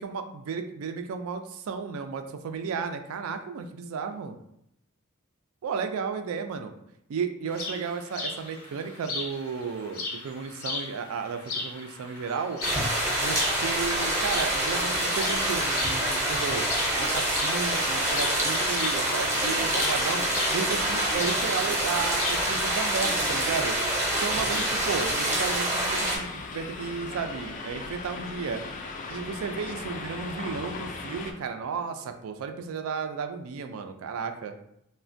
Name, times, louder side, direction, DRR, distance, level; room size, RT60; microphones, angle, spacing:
voice 1, 0.0-4.4 5.6-6.7 7.1-12.6 13.2-16.6 17.0-20.2 20.5-23.8 24.2-28.6 29.1-34.6, right 5 dB, 70° right, 7 dB, 0.3 m, -33 dB
sound 1, 7.5-24.9, left 3 dB, 85° left, 0.6 m, -38 dB
sound 2, 12.6-26.2, right 1 dB, 15° right, 0.6 m, -26 dB
sound 3, 26.1-31.3, left 3 dB, 40° left, 0.3 m, -38 dB
3.2 x 2.1 x 2.5 m, 0.76 s
head